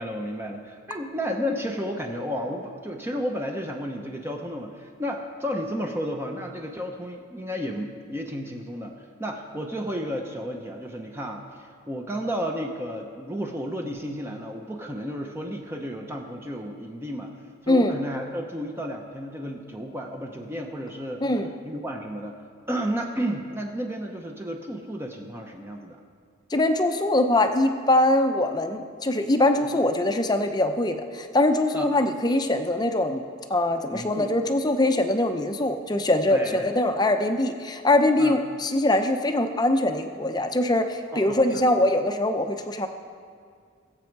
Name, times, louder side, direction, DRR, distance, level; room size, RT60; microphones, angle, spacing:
voice 1, 0.0-17.3 17.6-21.2 21.6-22.4 22.7-26.0 29.6-29.8 31.7-32.1 33.9-34.3 36.3-36.7 38.2-38.4 41.1-41.6, equal, 10° right, 2 dB, 0.8 m, -32 dB
voice 2, 26.5-33.2 33.5-42.9, left 1 dB, 20° left, 7 dB, 0.7 m, -22 dB
21.0 x 7.6 x 4.7 m, 2.1 s
head